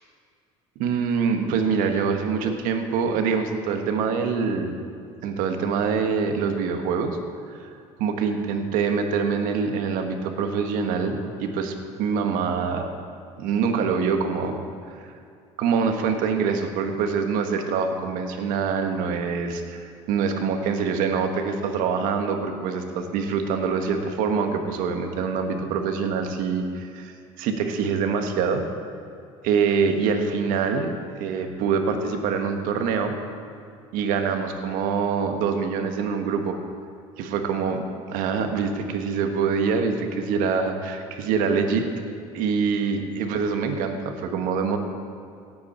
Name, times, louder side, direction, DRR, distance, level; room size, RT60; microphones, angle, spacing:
voice 1, 0.8-4.8 5.2-7.2 8.0-12.9 13.4-14.6 15.0-15.1 15.6-28.6 29.4-30.9 31.2-33.1 33.9-36.6 37.2-41.9 42.3-44.8, right 5 dB, 75° right, 5 dB, 1.4 m, -25 dB
17.5 x 8.6 x 4.4 m, 2.4 s
supercardioid pair, 90°, 14 cm